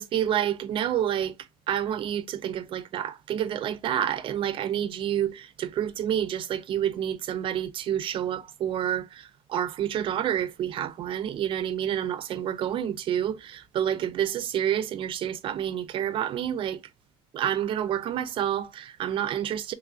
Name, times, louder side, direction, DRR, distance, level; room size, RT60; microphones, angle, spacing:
voice 1, 0.0-1.3 1.7-16.8 17.3-19.7, right 10 dB, 35° right, 0.3 m, -28 dB
3.2 x 2.4 x 2.3 m
supercardioid pair, 125°, 15 cm